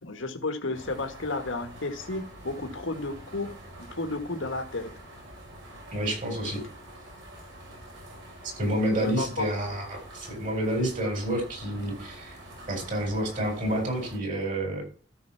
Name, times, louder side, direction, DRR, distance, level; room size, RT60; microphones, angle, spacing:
voice 1, 0.0-3.5 4.0-4.9 9.0-9.5, left 2 dB, 70° left, 6 dB, 1.5 m, -32 dB
sound 1, 0.7-14.2, right 1 dB, 60° right, 5.4 m, -46 dB
voice 2, 5.9-6.6 8.6-12.4 12.7-14.8, right 1 dB, 40° right, 3 dB, 4.2 m, -29 dB
13.0 x 5.4 x 5.8 m, 0.39 s
head